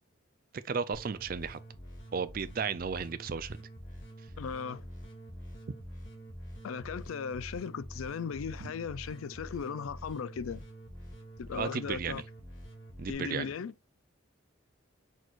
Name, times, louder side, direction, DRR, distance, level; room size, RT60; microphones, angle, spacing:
voice 1, 0.7-1.6 2.1-3.6 8.6-8.7 11.5-12.2 13.0-13.5, right 6 dB, 45° right, 0.4 m, -34 dB
sound 1, 0.9-13.1, equal, 65° left, 2.4 m, -46 dB
voice 2, 4.4-4.9 6.6-10.6 11.4-12.2 13.1-13.7, left 6 dB, 85° left, 0.4 m, -37 dB
6.2 x 3.1 x 2.4 m
head